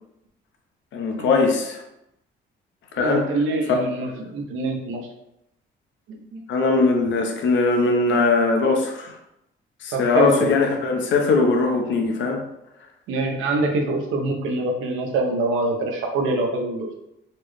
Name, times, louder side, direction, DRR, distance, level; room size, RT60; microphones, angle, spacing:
voice 1, 0.9-1.8 2.9-3.2 6.5-9.1 9.8-12.4, left 3 dB, 70° left, 2 dB, 0.7 m, -20 dB
voice 2, 3.0-5.1 6.1-6.4 9.9-10.7 13.1-16.9, right 2 dB, 90° right, 2 dB, 0.7 m, -25 dB
4.1 x 2.1 x 3.1 m, 0.85 s
cardioid pair, 90°, 20 cm